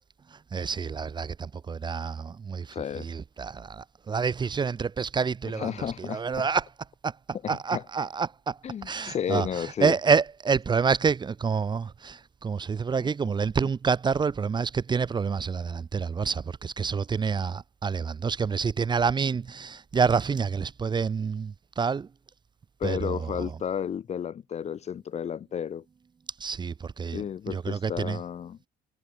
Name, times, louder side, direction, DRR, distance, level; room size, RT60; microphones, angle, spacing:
voice 1, 0.3-6.7 7.0-7.2 7.5-22.1 22.8-23.5 26.4-28.2, right 5 dB, 25° right, 0.7 m, -28 dB
voice 2, 2.7-3.1 5.5-6.2 7.4-7.8 8.6-9.9 22.8-25.8 27.1-28.6, left 8 dB, 40° left, 0.8 m, -32 dB
cardioid pair, 110°, 17 cm